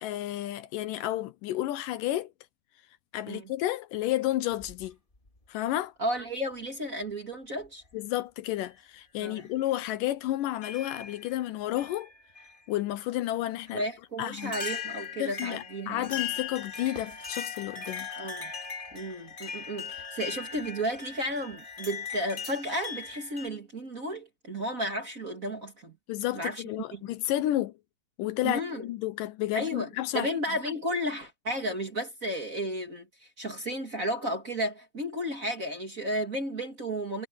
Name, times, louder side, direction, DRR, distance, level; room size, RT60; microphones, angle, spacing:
voice 1, 0.0-2.3 3.1-5.0 5.5-5.9 7.9-12.1 12.7-13.8 14.2-14.5 15.2-18.1 26.1-27.8 28.2-30.3, left 14 dB, 75° left, 2.4 m, -31 dB
sound 1, 4.5-5.4 6.5-6.6 7.6-7.9 8.5-8.7 9.4-9.5 10.6-11.3 11.8-12.6 13.7-13.8 14.4-23.5, left 6 dB, 20° left, 1.8 m, -39 dB
voice 2, 6.0-7.8 9.2-9.4 13.7-16.1 18.1-18.5 18.9-26.0 26.3-26.6 26.9-27.0 28.4-28.9 29.5-29.9 30.1-37.3, equal, 30° right, 2.1 m, -33 dB
omnidirectional pair, 4.0 m